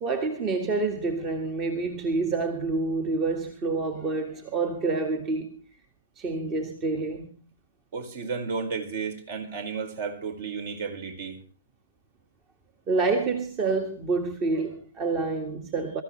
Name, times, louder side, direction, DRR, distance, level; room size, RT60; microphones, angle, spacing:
voice 1, 0.0-5.6 6.2-7.3 12.9-16.0, right 3 dB, 25° right, 1.9 m, -28 dB
voice 2, 7.9-11.4, right 5 dB, 50° right, 4.9 m, -33 dB
24.0 x 14.0 x 3.2 m
hypercardioid pair, 135°, 0 cm